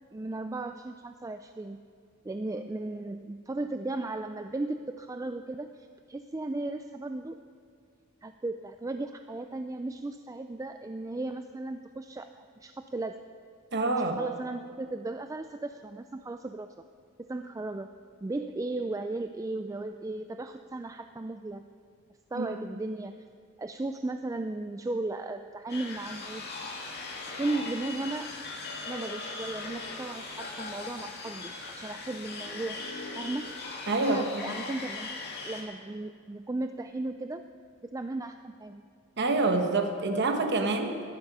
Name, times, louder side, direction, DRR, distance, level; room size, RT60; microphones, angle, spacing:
voice 1, 0.1-1.8 2.2-7.4 8.2-13.2 14.2-16.8 17.2-17.9 18.2-21.6 22.3-23.3 23.6-26.5 27.4-28.4 28.9-32.8 33.2-33.4 34.0-35.2 35.4-37.4 37.9-38.8, right 2 dB, 15° right, 8 dB, 0.3 m, -36 dB
voice 2, 13.7-14.2 22.4-22.5 33.9-34.5 39.2-41.0, right 3 dB, 55° right, 5 dB, 1.0 m, -27 dB
sound 1, 25.7-35.6, left 3 dB, 50° left, 2.3 m, -39 dB
15.5 x 12.5 x 5.5 m, 2.3 s
head